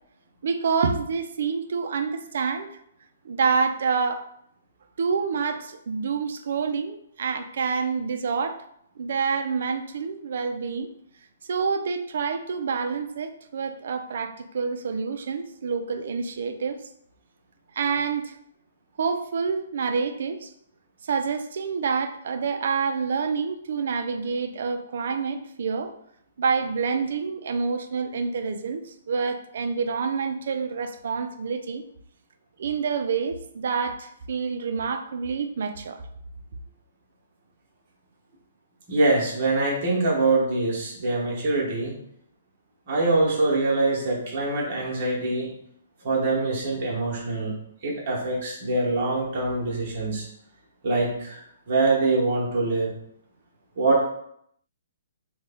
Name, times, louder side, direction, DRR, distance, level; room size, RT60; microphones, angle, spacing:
voice 1, 0.4-2.7 3.2-4.2 5.0-8.6 9.0-10.9 11.5-16.8 17.7-18.4 19.0-20.5 21.0-25.9 26.4-31.8 32.6-36.0, right 5 dB, 55° right, 7 dB, 0.3 m, -27 dB
voice 2, 38.9-41.9 42.9-45.5 46.0-47.5 47.8-50.2 50.8-51.4 51.7-52.9 53.8-54.0, right 2 dB, 35° right, -4 dB, 1.0 m, -24 dB
3.0 x 2.2 x 3.4 m, 0.71 s
hypercardioid pair, 175°, 0 cm